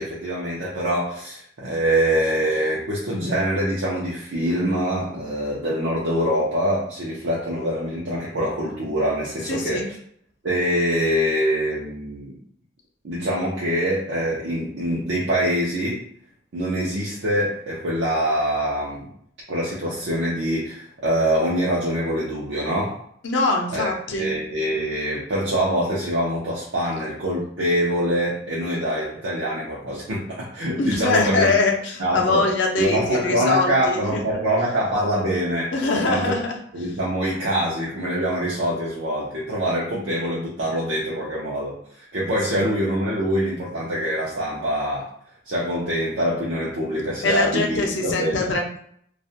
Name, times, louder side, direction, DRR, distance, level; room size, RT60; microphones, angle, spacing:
voice 1, 0.0-9.8 10.4-12.4 13.0-16.0 16.5-19.0 19.5-23.0 23.7-23.9 24.2-31.5 32.0-32.4 32.8-36.3 36.7-41.8 42.1-45.1 45.5-48.5, equal, 75° right, -6 dB, 0.6 m, -24 dB
voice 2, 9.5-9.9 23.2-24.3 30.8-34.2 35.7-36.6 42.5-42.7 47.2-48.8, left 3 dB, 70° left, 1 dB, 0.5 m, -23 dB
2.4 x 2.1 x 2.7 m, 0.64 s
head